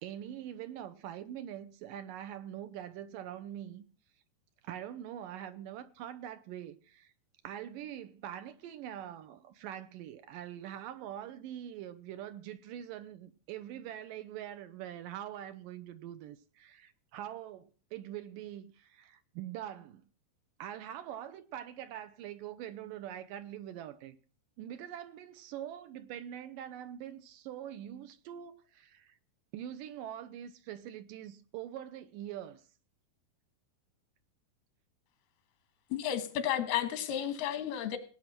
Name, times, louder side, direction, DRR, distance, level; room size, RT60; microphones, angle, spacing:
voice 1, 0.0-3.8 4.6-7.1 7.4-20.0 20.6-24.2 24.6-29.2 29.5-32.6, right 11 dB, 75° right, 2.3 m, -44 dB
voice 2, 35.9-38.0, left 10 dB, 90° left, 3.3 m, -32 dB
18.5 x 8.8 x 5.9 m
omnidirectional pair, 4.3 m